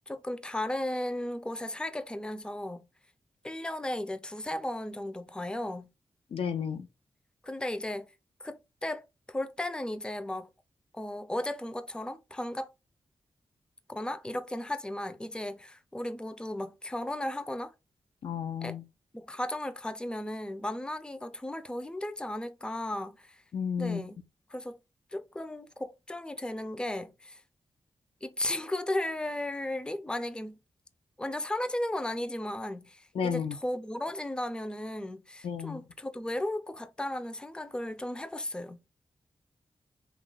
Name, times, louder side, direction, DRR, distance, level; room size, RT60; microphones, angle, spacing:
voice 1, 0.1-2.9 3.4-5.9 7.4-8.1 8.4-10.5 10.9-12.7 13.9-17.7 18.6-18.8 19.1-23.4 23.8-24.2 24.5-24.8 25.1-27.4 28.2-30.6 31.2-38.9, left 1 dB, 10° left, 0.4 m, -35 dB
voice 2, 6.3-6.9 18.2-18.8 23.5-24.0 33.2-33.5 35.4-35.8, left 7 dB, 70° left, 0.4 m, -32 dB
2.8 x 2.4 x 3.8 m
cardioid pair, 45°, 10 cm